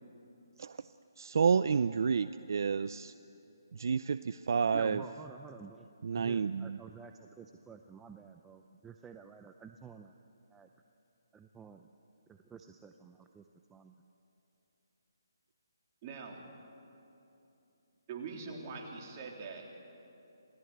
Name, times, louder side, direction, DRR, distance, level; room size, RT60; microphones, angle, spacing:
voice 1, 1.2-3.1 3.7-5.0 6.0-6.8, right 6 dB, 60° right, 14 dB, 0.5 m, -30 dB
voice 2, 4.7-5.9 6.1-10.1 10.5-10.7 11.3-11.9 12.3-13.4 13.7-13.9, right 6 dB, 10° right, 6 dB, 0.6 m, -51 dB
voice 3, 16.0-16.4 18.1-19.8, right 4 dB, 30° right, 0 dB, 3.5 m, -43 dB
27.5 x 18.0 x 8.1 m, 2.9 s
hypercardioid pair, 155°, 2 cm